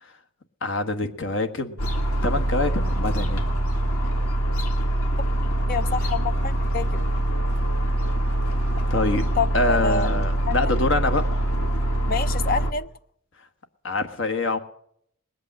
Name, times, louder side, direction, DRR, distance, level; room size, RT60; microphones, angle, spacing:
voice 1, 0.6-1.8 2.2-3.4 8.9-9.2 9.5-11.4 13.8-14.6, left 2 dB, 60° left, 1.4 m, -25 dB
sound 1, 1.8-12.7, right 1 dB, 90° left, 1.8 m, -24 dB
voice 2, 5.4-7.0 9.4-10.1 10.5-10.6 12.1-12.9, left 4 dB, 40° left, 0.5 m, -27 dB
20.0 x 8.4 x 7.7 m
head